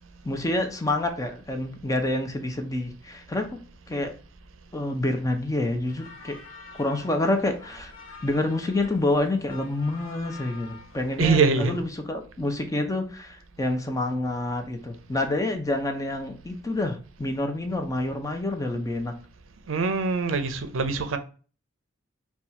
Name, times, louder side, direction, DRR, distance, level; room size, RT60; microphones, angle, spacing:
voice 1, 0.2-3.6 3.9-4.1 4.7-6.4 6.7-7.9 8.2-19.1, left 2 dB, 15° left, 0.6 m, -28 dB
sound 1, 5.9-11.2, left 4 dB, 75° left, 1.0 m, -47 dB
voice 2, 11.2-11.8 19.7-21.2, right 4 dB, 70° right, 0.5 m, -23 dB
4.2 x 2.3 x 4.3 m
head